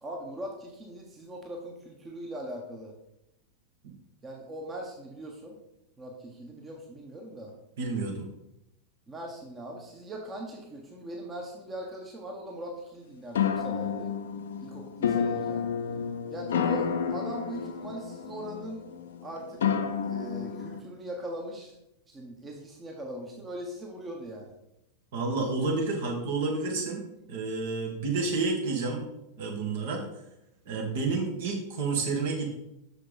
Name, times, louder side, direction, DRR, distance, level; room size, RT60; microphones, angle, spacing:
voice 1, 0.0-2.9 4.2-5.6 6.0-7.5 9.1-14.2 14.6-15.7 16.3-18.8 19.2-19.6 20.1-21.7 22.1-24.5, right 1 dB, 20° right, 0 dB, 1.2 m, -40 dB
voice 2, 7.8-8.3 25.1-29.0 29.4-30.1 30.7-32.5, right 3 dB, 55° right, 1 dB, 1.8 m, -30 dB
sound 1, 13.4-20.8, left 7 dB, 60° left, 0.6 m, -30 dB
6.6 x 6.4 x 4.0 m, 0.85 s
figure-of-eight pair, 90°, 0 cm